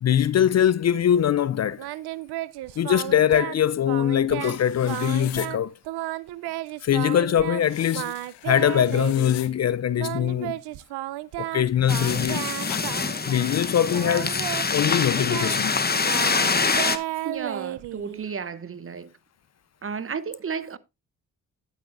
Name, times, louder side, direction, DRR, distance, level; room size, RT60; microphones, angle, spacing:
voice 1, 0.0-1.9 2.8-5.7 6.8-8.1 8.5-10.6 11.4-12.5 13.2-14.4 14.7-15.7, left 10 dB, 45° left, 0.5 m, -22 dB
Singing, 1.8-3.6 3.9-4.6 4.9-7.6 7.9-9.4 10.0-13.6 13.9-18.3, right 16 dB, 75° right, 0.6 m, -33 dB
sound 1, 4.4-5.5 7.6-9.5 11.9-12.8, left 15 dB, 90° left, 0.8 m, -40 dB
sound 2, 11.9-17.0, left 4 dB, 25° left, 1.0 m, -25 dB
voice 2, 17.2-19.1 19.8-20.8, right 6 dB, 35° right, 0.8 m, -33 dB
10.0 x 9.0 x 2.5 m
supercardioid pair, 50°, 40 cm